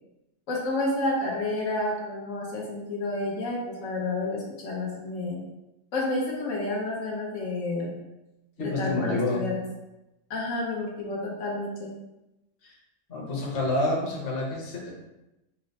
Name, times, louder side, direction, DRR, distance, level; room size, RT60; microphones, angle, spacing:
voice 1, 0.5-5.4 5.9-7.9 8.6-9.6 10.3-11.9, left 2 dB, 75° left, -3 dB, 1.2 m, -30 dB
voice 2, 8.6-9.4 12.6-12.7 13.1-14.9, left 2 dB, 50° left, -3 dB, 1.1 m, -28 dB
4.4 x 2.0 x 4.0 m, 0.95 s
omnidirectional pair, 1.4 m